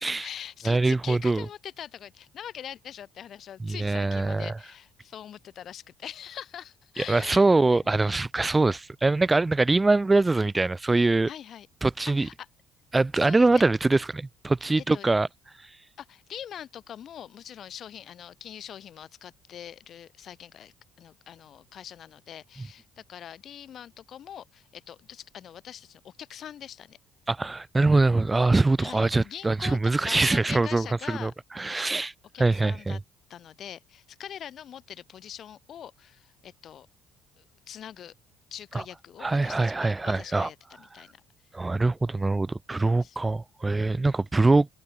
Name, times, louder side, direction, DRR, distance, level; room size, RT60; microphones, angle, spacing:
voice 1, 0.0-7.9 11.3-11.7 12.2-12.5 13.1-13.6 14.8-15.1 16.0-27.0 28.8-31.3 32.3-33.0 33.3-36.9 37.4-38.1 38.5-41.2 42.7-43.2, left 9 dB, 50° left, 2.0 m, -43 dB
voice 2, 0.7-1.5 3.6-4.5 7.0-11.3 11.8-12.3 12.9-15.3 27.3-31.3 31.6-32.1 32.4-33.0 38.7-38.8 39.2-40.5 41.5-44.7, right 3 dB, 20° right, 0.5 m, -23 dB
figure-of-eight pair, 50°, 0 cm